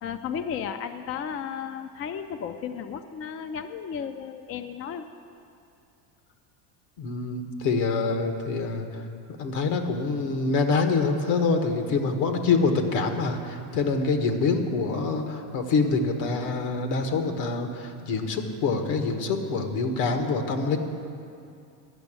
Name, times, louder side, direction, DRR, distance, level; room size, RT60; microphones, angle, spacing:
voice 1, 0.0-5.1, left 7 dB, 30° left, 8 dB, 0.4 m, -34 dB
voice 2, 7.0-9.0 9.4-20.8, left 4 dB, 70° left, 6 dB, 1.5 m, -25 dB
12.0 x 6.0 x 8.9 m, 2.5 s
supercardioid pair, 105°, 50 cm